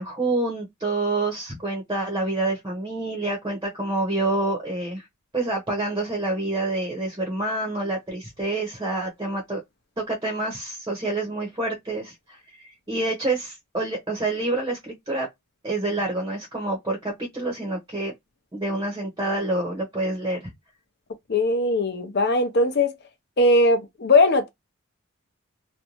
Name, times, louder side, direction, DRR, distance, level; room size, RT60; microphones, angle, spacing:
voice 1, 0.0-5.1 5.3-9.6 10.0-15.3 15.6-18.1 18.5-20.5, right 2 dB, 20° right, 0.7 m, -27 dB
voice 2, 21.3-22.9 23.4-24.5, left 2 dB, 50° left, 0.6 m, -19 dB
2.5 x 2.1 x 2.9 m
head